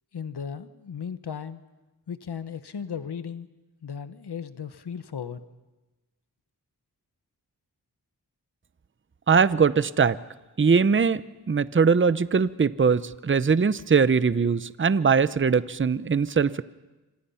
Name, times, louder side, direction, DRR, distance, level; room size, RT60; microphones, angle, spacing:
voice 1, 0.1-1.6 2.1-3.5 3.8-5.4, left 7 dB, 85° left, 12 dB, 1.2 m, -36 dB
voice 2, 9.3-10.2 10.6-11.2 11.5-16.6, right 5 dB, 30° right, 16 dB, 0.7 m, -21 dB
27.5 x 25.5 x 5.7 m, 1.1 s
wide cardioid pair, 60°, 39 cm